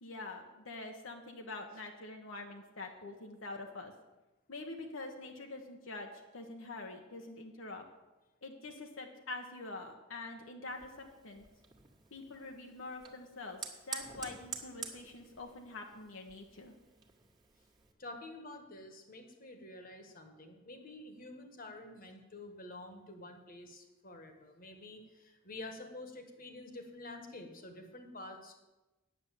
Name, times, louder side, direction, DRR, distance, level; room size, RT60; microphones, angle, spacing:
voice 1, 0.0-3.9 4.5-7.8 8.4-11.5 12.1-16.8, left 2 dB, 75° left, 2 dB, 1.2 m, -45 dB
Fire, 10.7-17.9, right 5 dB, 20° right, 1.6 m, -49 dB
voice 2, 18.0-28.6, left 2 dB, 45° left, 5 dB, 1.5 m, -49 dB
9.5 x 7.9 x 7.6 m, 1.1 s
head